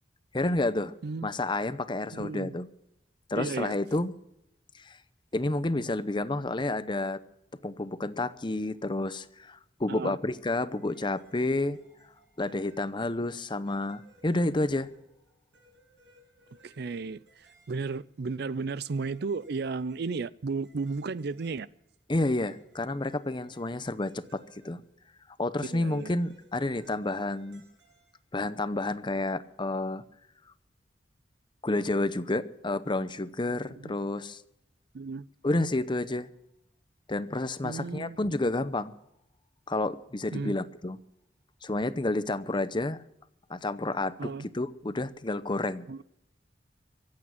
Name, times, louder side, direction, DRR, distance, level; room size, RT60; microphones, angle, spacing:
voice 1, 0.3-0.9 1.2-2.7 3.3-4.1 4.8-5.0 5.3-7.2 7.6-11.8 12.4-14.9 22.1-24.8 25.4-27.6 28.3-30.0 31.6-34.4 35.4-36.3 37.1-38.9 39.7-41.0 41.6-43.0 43.5-45.9, left 2 dB, 25° left, 0.7 m, -30 dB
voice 2, 2.1-2.6 3.4-3.8 9.9-10.2 16.6-17.2 17.7-21.7 25.6-26.1 33.8-33.9 34.9-35.3 37.6-38.2 40.3-40.5 44.2-44.5 45.9-46.0, right 4 dB, 60° right, 0.5 m, -34 dB
sound 1, 10.7-13.3 13.7-18.1 18.9-20.3 20.6-25.1 25.8-28.3, right 1 dB, 90° right, 7.5 m, -63 dB
24.5 x 8.6 x 5.9 m
head